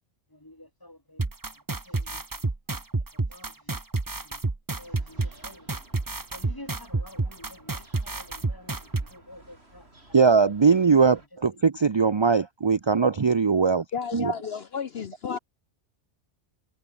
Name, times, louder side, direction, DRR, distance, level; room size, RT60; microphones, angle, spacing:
voice 1, 0.3-1.2 1.9-2.2 2.7-2.8 3.1-3.8 4.2-4.4 4.8-5.7 6.3-9.9 10.2-10.4, left 1 dB, 15° left, 3.0 m, -49 dB
sound 1, 1.2-9.1, right 3 dB, 20° right, 0.9 m, -29 dB
sound 2, 4.8-11.3, right 2 dB, 55° right, 5.5 m, -56 dB
voice 2, 10.1-13.8 14.1-14.3, right 5 dB, 35° right, 0.5 m, -20 dB
voice 3, 13.9-15.4, left 6 dB, 55° left, 1.1 m, -32 dB
omnidirectional pair, 1.3 m